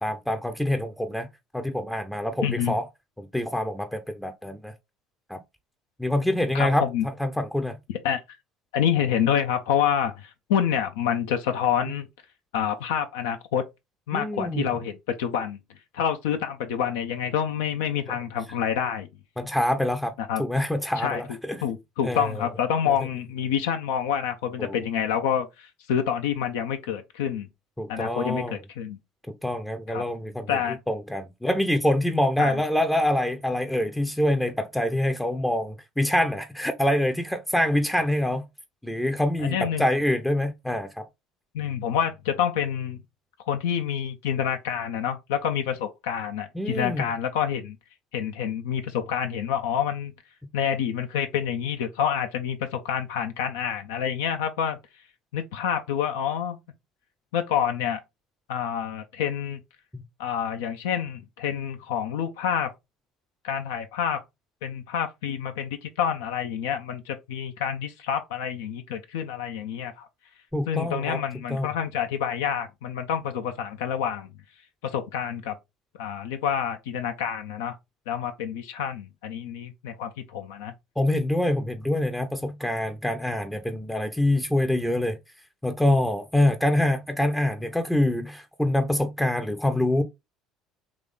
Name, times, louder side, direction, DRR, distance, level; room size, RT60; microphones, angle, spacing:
voice 1, 0.0-1.3 1.5-2.9 3.2-4.7 5.3-5.4 6.0-6.9 7.2-7.8 14.1-14.7 19.4-20.1 20.4-21.6 22.0-22.4 24.6-24.8 27.8-28.6 29.3-30.5 30.9-38.5 38.8-41.1 46.5-47.1 59.9-60.0 70.5-71.2 71.5-71.7 81.0-85.2 85.6-90.0, left 1 dB, 5° left, 0.5 m, -25 dB
voice 2, 2.4-2.7 6.5-7.0 8.0-8.2 8.7-12.1 12.5-13.6 14.1-15.6 15.9-19.1 20.3-20.4 21.0-21.2 21.6-27.5 27.9-29.0 29.9-30.0 30.5-30.8 32.4-32.6 39.4-39.8 41.5-43.0 43.5-47.8 48.1-50.1 50.5-54.8 55.3-56.6 57.3-58.0 58.5-59.6 60.2-62.7 63.4-64.2 64.6-70.1 70.7-74.3 74.8-75.6 76.0-77.8 78.1-80.7, left 8 dB, 70° left, 0.5 m, -27 dB
3.7 x 3.0 x 3.6 m
figure-of-eight pair, 60°, 0 cm